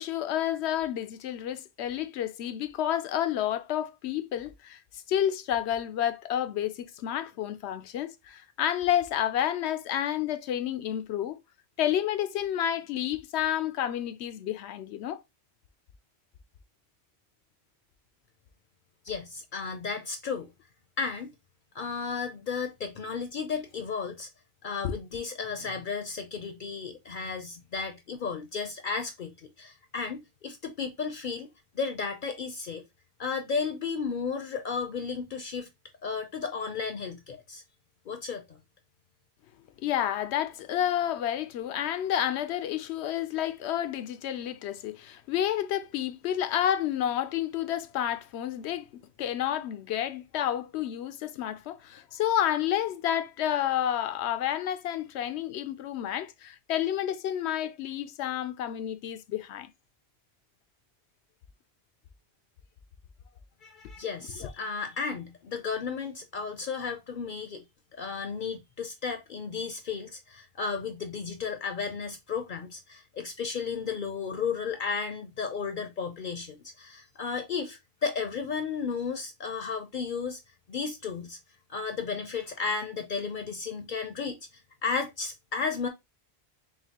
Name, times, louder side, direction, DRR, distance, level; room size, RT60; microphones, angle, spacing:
voice 1, 0.0-4.8 5.1-11.4 11.8-15.2 24.8-24.9 39.8-59.7 64.4-64.5, left 11 dB, 85° left, 0.8 m, -30 dB
voice 2, 19.0-20.5 21.0-21.3 21.7-24.3 24.6-31.5 31.7-32.8 33.2-35.7 36.0-37.6 38.1-38.6 63.6-67.6 67.9-80.4 80.7-81.4 81.7-85.9, left 5 dB, 55° left, 0.7 m, -34 dB
5.8 x 2.3 x 2.8 m
omnidirectional pair, 1.1 m